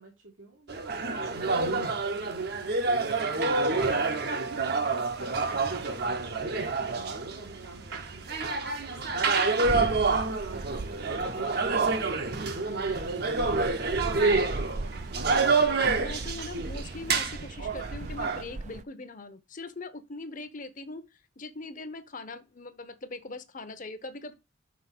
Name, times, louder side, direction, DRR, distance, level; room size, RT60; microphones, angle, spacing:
voice 1, 0.0-2.8 3.6-15.3, right 2 dB, 85° right, 1.9 m, -47 dB
sound 1, 0.7-18.4, right 3 dB, 55° right, 0.9 m, -28 dB
sound 2, 9.6-18.8, right 2 dB, 35° right, 0.4 m, -39 dB
voice 2, 16.0-21.0 21.4-24.3, left 2 dB, 40° left, 0.9 m, -41 dB
6.2 x 4.4 x 6.0 m
head